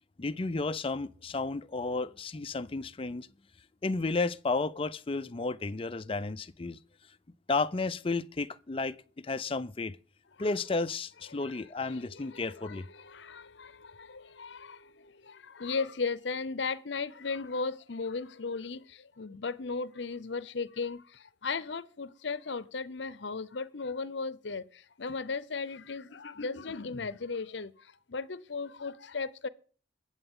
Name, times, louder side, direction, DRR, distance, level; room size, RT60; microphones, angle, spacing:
voice 1, 0.2-3.3 3.8-6.8 7.5-9.9 10.4-12.8, left 3 dB, 30° left, 0.5 m, -32 dB
voice 2, 11.3-29.5, left 4 dB, 65° left, 0.7 m, -37 dB
22.5 x 7.9 x 3.7 m
head